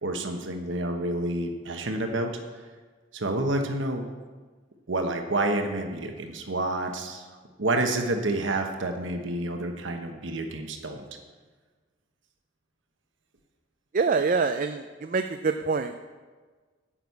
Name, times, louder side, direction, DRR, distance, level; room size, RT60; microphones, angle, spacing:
voice 1, 0.0-2.3 3.1-4.1 4.9-7.3 7.6-11.0, right 2 dB, 85° right, 4 dB, 1.1 m, -29 dB
voice 2, 13.9-14.8 15.1-15.9, right 4 dB, 45° right, 7 dB, 0.4 m, -25 dB
9.8 x 6.2 x 8.3 m, 1.4 s
head